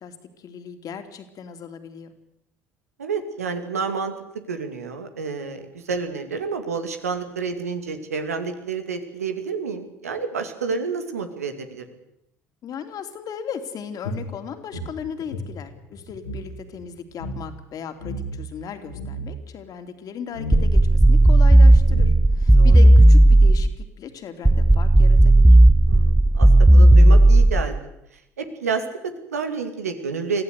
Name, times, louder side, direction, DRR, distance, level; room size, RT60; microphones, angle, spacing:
voice 1, 0.0-2.1 12.6-25.6, left 7 dB, 50° left, 8 dB, 2.9 m, -37 dB
voice 2, 3.0-4.1 4.5-11.8 22.5-22.8 25.9-27.8 28.4-30.4, right 5 dB, 90° right, 7 dB, 2.3 m, -29 dB
sound 1, 14.0-16.5 16.8-16.9 17.1-17.4 18.0-18.5 18.8-19.4 20.3-20.7 21.5-21.6 21.9-22.5, equal, 85° left, 3.4 m, -32 dB
sound 2, 20.5-23.8 24.5-27.8, right 1 dB, 5° right, 0.8 m, -13 dB
24.5 x 15.0 x 8.3 m, 0.83 s
hypercardioid pair, 65°, 8 cm